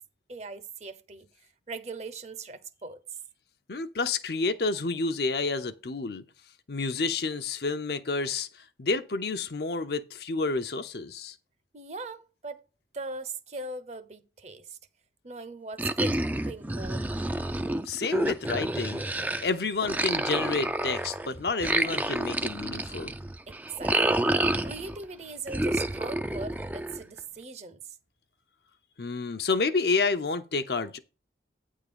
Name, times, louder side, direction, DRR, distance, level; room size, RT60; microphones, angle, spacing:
voice 1, 0.3-1.3 1.7-3.0 11.7-12.6 12.9-14.8 15.2-17.1 23.5-24.2 24.6-27.8, right 3 dB, 35° right, 0.7 m, -40 dB
voice 2, 3.7-6.2 6.7-8.5 8.8-11.3 17.8-23.1 29.0-31.0, left 3 dB, 60° left, 0.7 m, -29 dB
sound 1, 15.8-19.5 19.8-25.0 25.5-27.2, right 1 dB, 10° right, 0.4 m, -29 dB
9.1 x 3.7 x 6.8 m
head